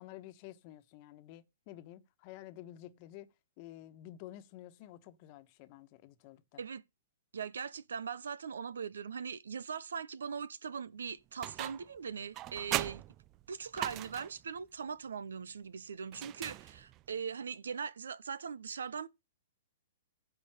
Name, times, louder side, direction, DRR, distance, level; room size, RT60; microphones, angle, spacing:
voice 1, 0.0-6.6, left 14 dB, 45° left, 1.3 m, -51 dB
voice 2, 7.3-13.0 13.5-19.1, right 6 dB, 80° right, 0.7 m, -40 dB
sound 1, 11.4-12.0 12.3-14.4 16.1-17.1, right 15 dB, 30° right, 0.4 m, -39 dB
9.9 x 5.1 x 6.5 m
hypercardioid pair, 130°, 0 cm